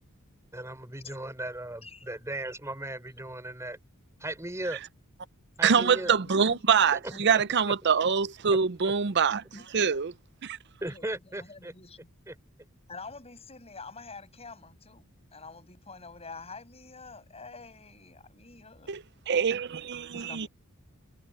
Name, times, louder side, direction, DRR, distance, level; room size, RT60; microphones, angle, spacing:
voice 1, 0.5-3.8 4.2-4.8 5.6-6.1 7.3-7.4 8.8-8.9 10.8-11.7 12.3-12.4, right 1 dB, 15° right, 4.9 m, -37 dB
voice 2, 5.6-9.4 9.7-10.1 10.4-10.6 18.9-20.5, right 6 dB, 50° right, 0.6 m, -25 dB
voice 3, 6.4-6.8 7.1-7.5 9.5-10.0 10.8-12.1 12.9-18.9 20.1-20.5, left 4 dB, 30° left, 7.3 m, -47 dB
head